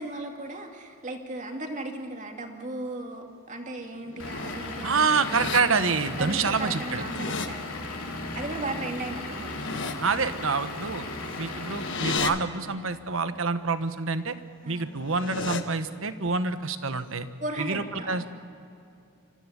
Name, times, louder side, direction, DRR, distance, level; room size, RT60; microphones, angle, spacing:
voice 1, 0.0-5.7 6.2-7.7 8.0-9.5 14.6-14.9 17.4-18.3, right 2 dB, 35° right, 3 dB, 2.4 m, -36 dB
sound 1, 4.0-4.6 5.0-5.6 6.7-7.5 9.3-9.9 11.2-12.3 14.8-15.6, left 4 dB, 55° left, 1.3 m, -34 dB
Vehicle / Engine, 4.2-12.2, left 2 dB, 75° left, 3.2 m, -36 dB
voice 2, 4.8-7.0 10.0-11.0 11.4-14.4 14.7-17.3 17.6-18.2, right 4 dB, 60° right, 11 dB, 1.2 m, -27 dB
26.5 x 14.5 x 9.9 m, 2.6 s
head